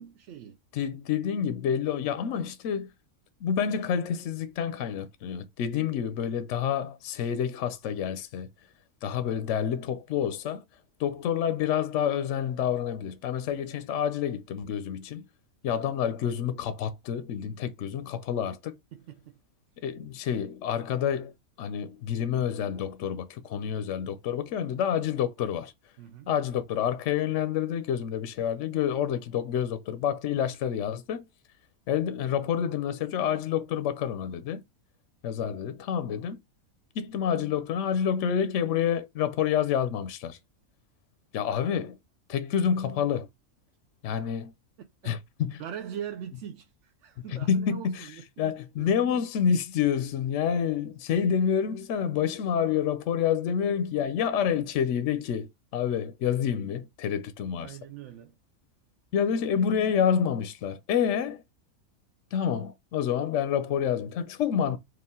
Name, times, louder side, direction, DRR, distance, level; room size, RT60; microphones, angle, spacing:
voice 1, 0.0-0.6 18.9-19.4 26.0-26.3 45.6-49.0 57.6-58.3, right 9 dB, 65° right, 0.8 m, -42 dB
voice 2, 0.7-2.9 3.4-8.5 9.0-10.6 11.0-15.3 15.6-18.7 19.8-21.3 21.6-25.7 26.3-31.2 31.9-34.6 35.2-36.4 37.0-40.4 41.3-42.0 42.3-43.3 44.0-44.5 45.0-45.6 47.3-48.1 48.4-55.5 55.7-57.8 59.1-61.4 62.3-64.8, left 8 dB, 65° left, 0.8 m, -28 dB
4.8 x 2.4 x 3.5 m
omnidirectional pair, 1.5 m